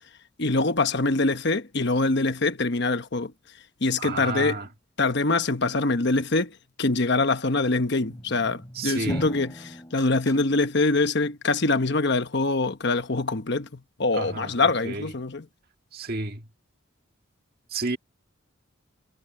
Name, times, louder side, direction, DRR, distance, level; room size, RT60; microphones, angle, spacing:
voice 1, 0.4-3.3 3.8-4.6 5.0-15.5, left 3 dB, 55° left, 1.1 m, -24 dB
voice 2, 4.0-4.7 8.8-9.2 14.1-14.6 14.8-15.1 15.9-16.5 17.7-18.0, right 3 dB, 45° right, 1.7 m, -31 dB
sound 1, 8.0-11.0, equal, 15° left, 3.1 m, -39 dB
head